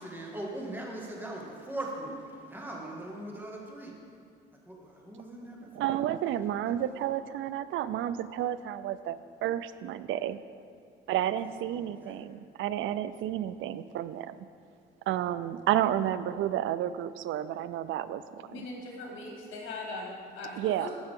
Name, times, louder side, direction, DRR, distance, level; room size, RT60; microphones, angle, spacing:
voice 1, 0.0-4.0 4.7-6.0 6.9-7.1 11.7-12.2, right 1 dB, 10° right, -2 dB, 2.0 m, -40 dB
voice 2, 5.7-10.4 11.1-14.5 15.1-18.7 20.6-20.9, right 11 dB, 80° right, 14 dB, 0.4 m, -31 dB
voice 3, 18.4-20.9, left 2 dB, 75° left, -2 dB, 2.5 m, -40 dB
14.0 x 6.5 x 3.7 m, 2.2 s
cardioid pair, 90°, 20 cm